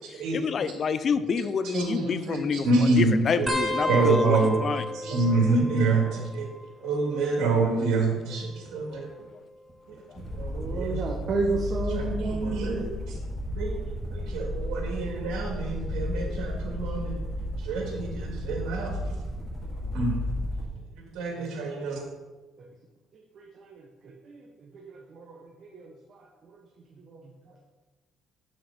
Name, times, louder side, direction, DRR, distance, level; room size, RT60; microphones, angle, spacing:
voice 1, 0.1-4.9 6.8-6.9 8.3-8.4 8.9-9.0 10.1-10.2, left 6 dB, 45° left, 13 dB, 0.5 m, -28 dB
voice 2, 1.7-3.1 3.5-4.6 5.0-6.0 6.3-6.4 6.8-9.1 10.2-10.9 11.9-12.7 13.5-13.7 14.1-17.1 17.6-18.9 19.9-20.1 21.1-22.0, right 3 dB, 80° right, 0 dB, 2.6 m, -26 dB
sound 1, 3.5-6.6 6.9-7.5 8.5-10.0 10.6-11.0 12.2-12.5 14.0-14.1, left 1 dB, 15° right, 1.1 m, -34 dB
Helicopter Sound, 10.1-20.7, left 1 dB, 10° left, 2.9 m, -33 dB
voice 3, 10.5-12.9 21.4-21.5 23.6-23.7 24.3-24.4 24.7-24.8 25.1-25.3 25.6-25.9 27.1-27.2, right 3 dB, 50° right, 0 dB, 1.1 m, -30 dB
8.1 x 6.5 x 4.3 m, 1.2 s
cardioid pair, 110°, 0 cm